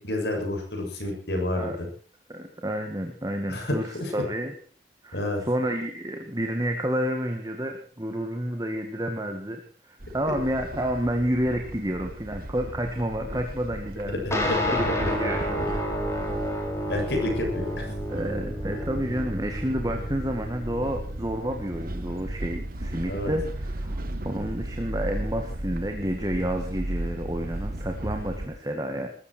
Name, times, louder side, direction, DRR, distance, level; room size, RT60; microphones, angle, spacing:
voice 1, 0.0-1.9 3.5-4.1 5.1-5.4 14.2-15.3 15.7-15.8 16.9-17.9 23.1-23.3, left 1 dB, 65° left, 2 dB, 7.4 m, -29 dB
voice 2, 2.3-4.5 5.0-15.6 18.1-29.1, equal, 20° right, 4 dB, 2.1 m, -30 dB
sound 1, 10.0-28.5, right 1 dB, 55° right, 1.7 m, -35 dB
sound 2, 14.3-22.1, equal, 15° left, 4.2 m, -31 dB
21.5 x 14.0 x 4.6 m, 0.41 s
head